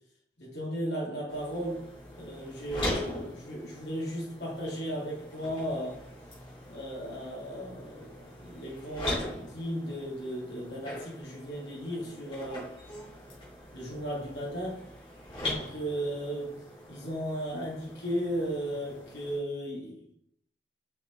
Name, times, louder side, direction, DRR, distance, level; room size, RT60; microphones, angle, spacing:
voice 1, 0.4-1.8 2.1-6.0 6.7-12.7 13.7-14.8 15.4-16.6 16.9-20.1, equal, 75° left, 3.1 m, -35 dB
sound 1, 1.3-19.4, left 1 dB, 30° left, 3.2 m, -41 dB
6.8 x 5.7 x 3.8 m
head